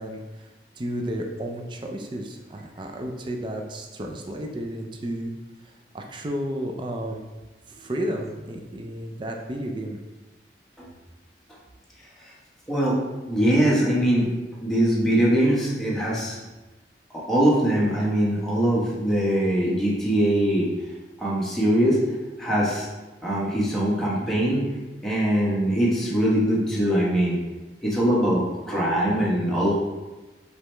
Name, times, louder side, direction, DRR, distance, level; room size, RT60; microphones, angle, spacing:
voice 1, 0.0-5.3 5.6-7.2 7.7-10.0, equal, 25° right, 2 dB, 0.4 m, -32 dB
voice 2, 13.3-14.3 14.6-16.4 17.1-20.7 21.2-22.0 22.4-22.9 23.2-24.7 25.0-27.4 27.8-29.8, right 1 dB, ahead, -7 dB, 1.0 m, -22 dB
4.8 x 3.3 x 3.2 m, 1.2 s
head